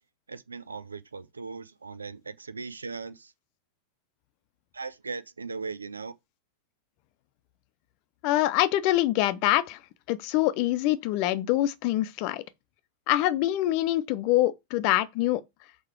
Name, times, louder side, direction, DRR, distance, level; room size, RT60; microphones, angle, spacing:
voice 1, 0.3-3.3 4.7-6.1, right 4 dB, 75° right, 0.7 m, -38 dB
voice 2, 8.2-9.8 10.1-12.4 13.1-15.4, left 15 dB, 45° left, 0.7 m, -25 dB
6.7 x 4.9 x 4.7 m
figure-of-eight pair, 90°, 0 cm